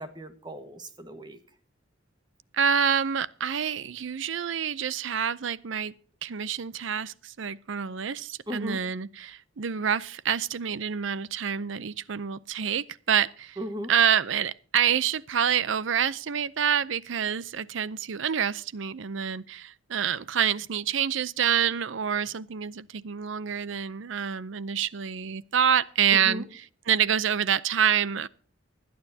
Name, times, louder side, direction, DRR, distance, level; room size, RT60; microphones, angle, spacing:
voice 1, 0.0-1.4 8.5-8.8 13.6-13.9 26.1-26.5, equal, 20° right, 1.4 m, -36 dB
voice 2, 2.5-5.9 6.2-13.6 13.9-26.6 26.9-28.3, right 8 dB, 65° right, 0.5 m, -27 dB
24.5 x 9.5 x 2.8 m
head